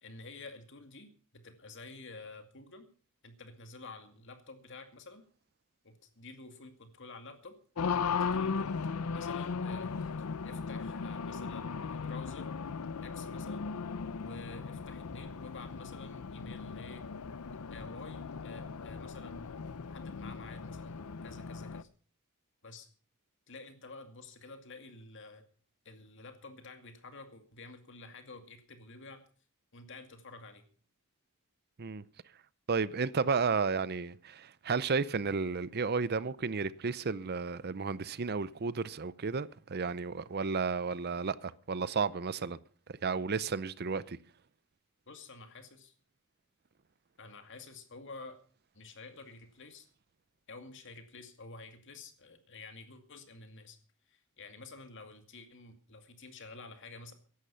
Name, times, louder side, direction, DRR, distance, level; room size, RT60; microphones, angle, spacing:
voice 1, 0.0-2.9 3.2-5.2 5.8-7.6 8.0-8.7 9.1-9.9 10.4-12.5 13.0-13.7 14.2-17.0 17.7-19.6 19.9-21.9 22.6-22.9 23.5-25.4 25.8-29.2 29.7-30.6 45.1-45.9 47.2-48.4 48.7-49.9 50.5-53.8 54.1-57.1, left 3 dB, 60° left, 2.3 m, -50 dB
Race car auto racing, 7.8-21.8, left 5 dB, 85° left, 0.6 m, -37 dB
voice 2, 32.7-42.6 43.0-44.2, right 5 dB, 45° right, 0.6 m, -32 dB
15.5 x 11.5 x 5.6 m
head